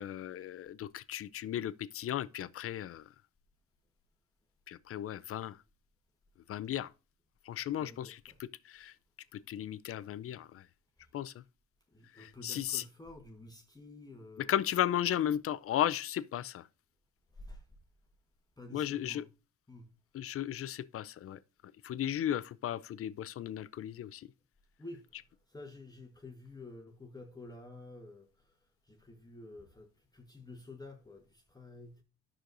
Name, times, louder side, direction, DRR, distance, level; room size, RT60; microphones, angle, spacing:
voice 1, 0.0-3.0 4.7-5.6 6.5-6.9 7.5-8.9 9.3-10.6 11.1-11.3 12.2-12.8 14.5-16.6 18.7-19.2 20.1-21.4 21.8-24.3, left 11 dB, 50° left, 0.4 m, -35 dB
voice 2, 7.7-8.4 11.0-11.1 11.9-14.6 17.3-17.6 18.6-19.3 19.7-20.0 24.8-28.5 28.8-32.0, left 2 dB, 15° left, 1.1 m, -50 dB
10.5 x 6.3 x 2.6 m
cardioid pair, 90°, 30 cm